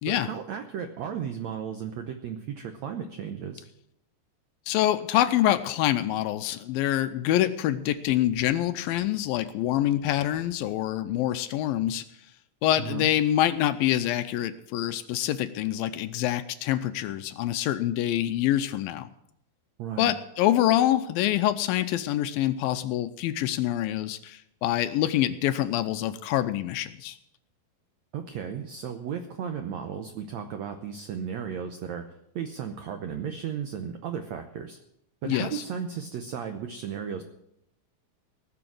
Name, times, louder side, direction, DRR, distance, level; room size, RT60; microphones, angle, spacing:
voice 1, 0.0-3.6 12.8-13.1 19.8-20.1 28.1-32.0 32.3-34.8 35.2-37.2, right 8 dB, 80° right, 6 dB, 1.6 m, -35 dB
voice 2, 4.7-12.0 12.6-19.1 20.0-27.2 35.3-35.6, left 13 dB, 80° left, 11 dB, 2.3 m, -26 dB
18.5 x 6.9 x 7.6 m, 0.77 s
omnidirectional pair, 4.4 m